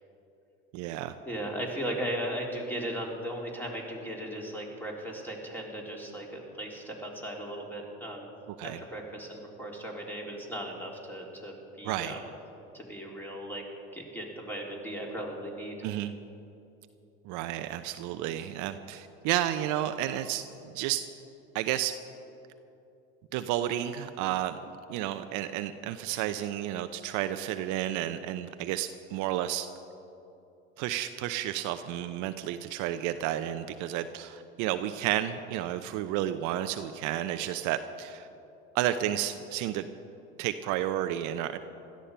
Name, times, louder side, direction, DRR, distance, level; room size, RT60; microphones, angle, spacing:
voice 1, 0.7-1.1 8.6-8.8 11.8-12.2 15.8-16.2 17.3-20.5 20.7-21.0 21.5-21.9 23.3-24.6 24.9-29.7 30.8-38.3 38.7-39.9 40.4-41.6, right 12 dB, 60° right, 10 dB, 0.7 m, -31 dB
voice 2, 1.3-8.3 8.6-12.2 12.7-13.6 13.9-15.8, equal, 5° left, -1 dB, 3.8 m, -37 dB
16.5 x 13.0 x 5.6 m, 2.8 s
hypercardioid pair, 75°, 35 cm